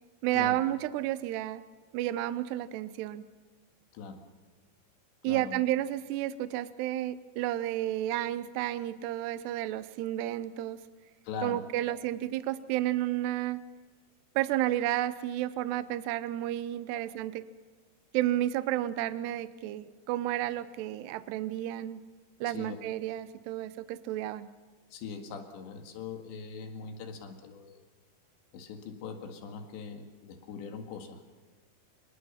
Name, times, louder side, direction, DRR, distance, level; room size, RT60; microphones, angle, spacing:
voice 1, 0.2-1.6 1.9-3.3 5.2-10.8 11.4-13.6 14.4-17.4 18.1-22.0 22.4-24.5, right 14 dB, 75° right, 14 dB, 2.7 m, -31 dB
voice 2, 5.3-5.6 11.2-12.0 16.9-17.0 22.5-22.8 24.9-27.8 28.5-31.2, left 5 dB, 75° left, 4 dB, 4.2 m, -41 dB
26.5 x 21.5 x 5.7 m, 1.4 s
omnidirectional pair, 5.2 m